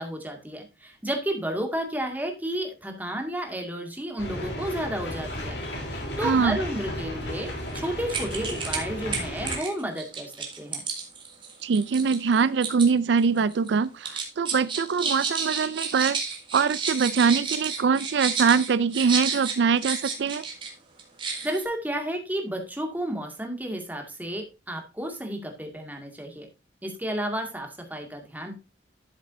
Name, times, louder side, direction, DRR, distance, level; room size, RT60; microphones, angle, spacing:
voice 1, 0.0-5.6 5.9-10.8 21.4-26.5 26.8-28.5, right 1 dB, 10° right, 2.1 m, -32 dB
sound 1, 4.2-9.6, left 1 dB, 70° left, 3.5 m, -34 dB
voice 2, 6.2-6.6 11.6-16.2 16.5-20.4, right 5 dB, 75° right, 0.4 m, -23 dB
sound 2, 7.7-7.8 8.1-8.8 9.1-12.9 13.2-13.7 14.0-20.7 21.0-21.6, right 5 dB, 30° right, 2.5 m, -31 dB
12.0 x 7.4 x 2.7 m
head